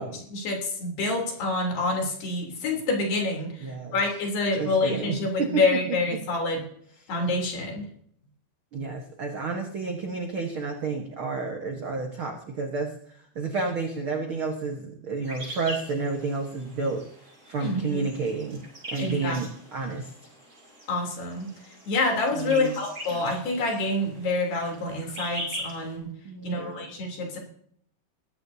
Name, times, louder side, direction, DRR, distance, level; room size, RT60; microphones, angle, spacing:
voice 1, 0.3-6.6 7.1-7.9 17.6-18.1 19.0-19.4 20.9-21.5 21.9-26.1 26.4-27.4, left 2 dB, 70° left, 0 dB, 5.5 m, -27 dB
voice 2, 3.6-4.0 4.6-5.5 8.7-17.0 17.5-20.1 22.3-22.7 26.2-26.9, right 4 dB, 70° right, 2 dB, 1.2 m, -31 dB
sound 1, 15.2-26.0, equal, 15° right, 6.6 m, -42 dB
21.0 x 15.5 x 2.8 m, 0.65 s
omnidirectional pair, 4.8 m